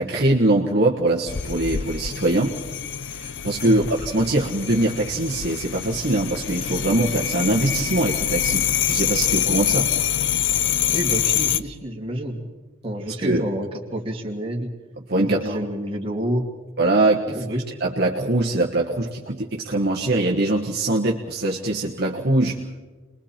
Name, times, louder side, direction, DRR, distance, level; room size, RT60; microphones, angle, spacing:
voice 1, 0.0-2.5 3.1-9.9 13.2-13.4 15.1-15.6 16.8-17.3 17.8-22.6, right 2 dB, 50° right, -2 dB, 1.4 m, -22 dB
sound 1, 1.3-11.6, left 10 dB, 55° left, 0.6 m, -25 dB
voice 2, 10.9-12.4 12.8-14.7 15.2-16.5 17.3-17.6, right 1 dB, 25° right, -1 dB, 2.5 m, -28 dB
30.0 x 21.5 x 4.4 m, 1.3 s
head